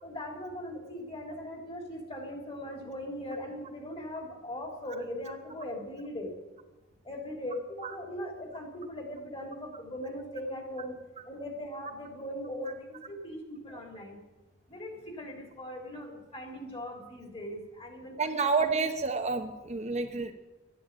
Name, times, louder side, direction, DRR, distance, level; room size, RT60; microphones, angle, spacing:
voice 1, 0.0-6.3 7.0-10.9 11.3-14.2 14.7-18.3 18.6-18.8, left 1 dB, 30° left, 2 dB, 3.3 m, -40 dB
voice 2, 18.2-20.3, right 4 dB, 35° right, 5 dB, 0.9 m, -29 dB
13.0 x 10.5 x 9.0 m, 1.1 s
head